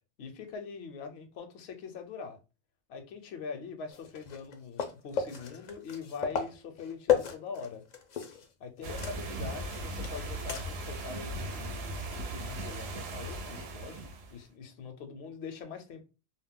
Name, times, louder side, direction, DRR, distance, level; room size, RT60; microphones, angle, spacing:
voice 1, 0.2-2.4 2.9-7.8 8.6-14.0 14.3-16.2, left 5 dB, 75° left, 0.8 m, -43 dB
sound 1, 3.9-8.5 8.8-10.9 11.3-11.4 13.9-14.0, left 8 dB, 55° left, 0.5 m, -35 dB
sound 2, 8.8-14.4, right 2 dB, 70° right, 0.8 m, -38 dB
2.3 x 2.0 x 3.5 m
omnidirectional pair, 1.1 m